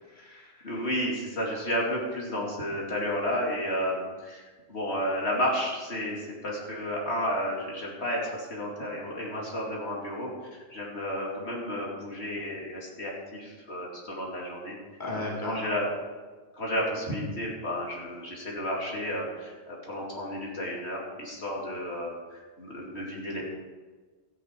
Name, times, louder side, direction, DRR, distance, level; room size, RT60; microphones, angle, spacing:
voice 1, 0.1-0.6 15.0-15.6, left 2 dB, 45° left, -4 dB, 2.6 m, -35 dB
voice 2, 0.6-4.4 4.7-14.7 15.1-15.9 16.6-23.4, equal, 70° left, -3 dB, 2.9 m, -32 dB
13.5 x 9.8 x 4.5 m, 1.4 s
omnidirectional pair, 1.1 m